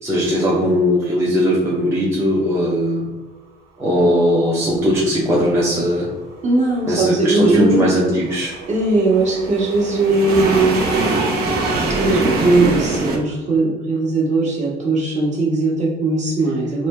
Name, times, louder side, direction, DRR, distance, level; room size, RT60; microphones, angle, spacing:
voice 1, 0.0-3.1 3.8-6.1 6.9-8.6, equal, 15° right, -6 dB, 0.6 m, -18 dB
sound 1, 6.2-13.2, right 2 dB, 65° right, 0.6 m, -23 dB
voice 2, 6.4-7.8 8.7-11.0 12.0-16.9, right 2 dB, 45° right, -5 dB, 1.2 m, -18 dB
3.1 x 2.2 x 3.1 m, 1.1 s
cardioid pair, 110°, 17 cm